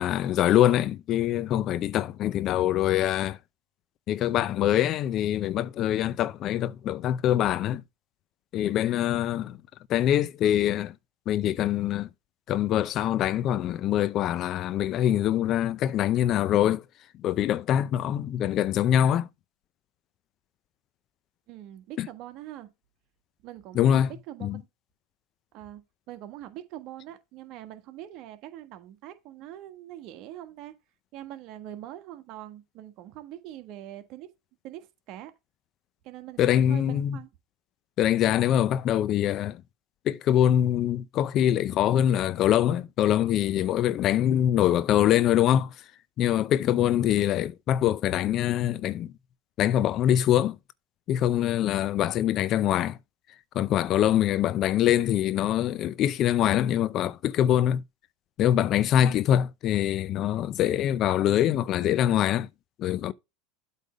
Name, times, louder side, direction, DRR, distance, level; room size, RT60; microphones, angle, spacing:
voice 1, 0.0-3.4 4.1-7.8 8.5-9.6 9.9-10.9 11.3-12.1 12.5-16.8 17.2-19.3 22.0-22.1 23.8-24.1 24.4-24.6 36.4-37.2 38.0-39.6 40.1-45.7 46.2-49.1 49.6-50.6 51.1-53.0 53.5-57.8 58.4-62.5 62.8-63.1, left 11 dB, 45° left, 0.5 m, -24 dB
voice 2, 21.5-22.7 23.4-24.7 25.5-25.8 26.1-30.7 31.1-34.3 34.6-35.3 36.0-37.3 46.8-47.1, right 13 dB, 55° right, 1.5 m, -43 dB
8.3 x 3.4 x 5.1 m
supercardioid pair, 110°, 0 cm